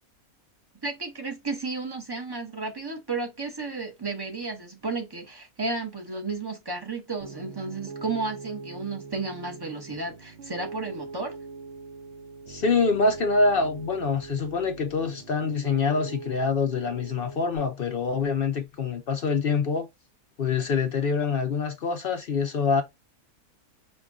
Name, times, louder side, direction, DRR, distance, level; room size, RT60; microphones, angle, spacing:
voice 1, 0.8-11.4, right 3 dB, 20° right, 0.8 m, -33 dB
Piano, 7.2-17.6, right 4 dB, 65° right, 0.7 m, -42 dB
voice 2, 12.5-19.9 20.4-22.8, left 4 dB, 70° left, 0.5 m, -25 dB
5.4 x 2.3 x 3.6 m
omnidirectional pair, 1.6 m